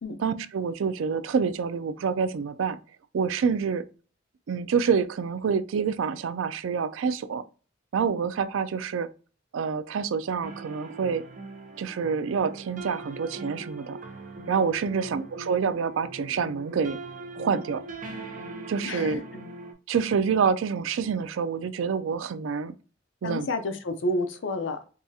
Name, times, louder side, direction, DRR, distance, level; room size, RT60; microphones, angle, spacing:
voice 1, 0.2-2.8 3.1-3.8 4.5-7.4 7.9-9.1 9.5-11.2 11.8-14.0 14.5-17.0 17.4-17.8 18.7-19.2 19.9-22.7 23.2-23.5, right 6 dB, 80° right, 0.4 m, -27 dB
sound 1, 10.4-19.7, right 2 dB, 40° right, 0.7 m, -41 dB
voice 2, 18.8-19.2 23.2-24.9, left 1 dB, 70° left, 0.6 m, -30 dB
4.7 x 2.3 x 2.7 m
head